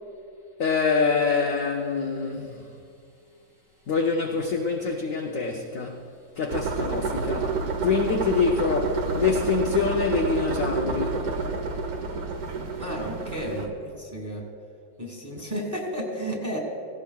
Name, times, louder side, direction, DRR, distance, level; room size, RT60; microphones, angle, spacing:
voice 1, 0.6-2.7 3.9-6.1 6.4-11.2, left 5 dB, 65° left, 0.8 m, -25 dB
sound 1, 6.5-13.7, right 4 dB, 55° right, 1.1 m, -29 dB
voice 2, 12.8-14.5 15.0-16.6, equal, 10° right, 1.5 m, -32 dB
17.0 x 17.0 x 2.3 m
omnidirectional pair, 2.2 m